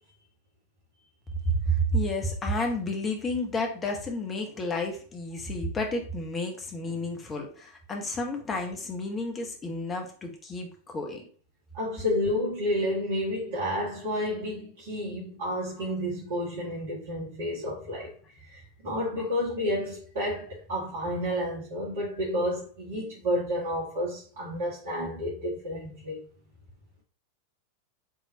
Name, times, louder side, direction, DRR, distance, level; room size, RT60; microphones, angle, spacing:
voice 1, 1.4-11.2, equal, 20° left, 1.1 m, -31 dB
voice 2, 11.7-26.2, left 1 dB, 50° right, 1.5 m, -30 dB
5.0 x 3.6 x 2.8 m
figure-of-eight pair, 90°, 0 cm